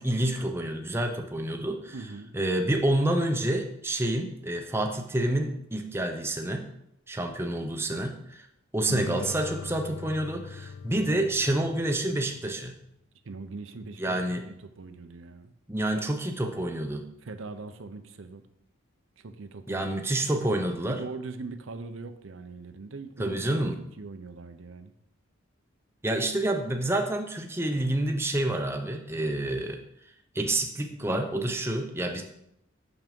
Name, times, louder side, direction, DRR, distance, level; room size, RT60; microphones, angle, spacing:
voice 1, 0.0-1.9 2.3-6.7 7.1-8.5 8.7-12.8 14.0-14.5 15.7-17.0 19.7-21.0 23.2-23.8 26.0-29.8 30.3-32.2, right 1 dB, 10° right, 4 dB, 0.6 m, -28 dB
voice 2, 1.9-2.3 13.2-14.2 14.5-15.5 15.9-16.0 17.2-18.4 19.2-20.3 20.9-23.7 24.0-24.9, right 3 dB, 75° right, 9 dB, 0.6 m, -41 dB
sound 1, 8.9-12.5, left 6 dB, 70° left, 0.3 m, -41 dB
6.2 x 5.9 x 5.3 m, 0.77 s
head